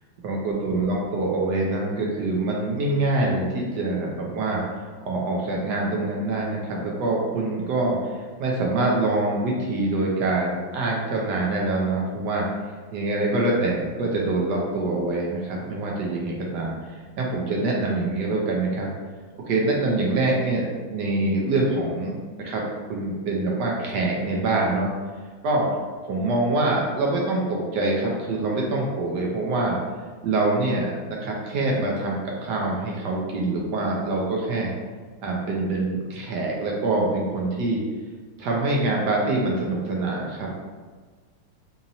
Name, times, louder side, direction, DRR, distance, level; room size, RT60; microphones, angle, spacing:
voice 1, 0.2-12.5 12.9-16.7 17.2-18.9 19.5-22.1 22.4-24.9 25.4-25.7 26.0-29.8 30.2-34.7 35.2-37.8 38.4-40.6, right 2 dB, 70° right, -2 dB, 1.0 m, -25 dB
4.1 x 2.8 x 2.6 m, 1.4 s
omnidirectional pair, 2.4 m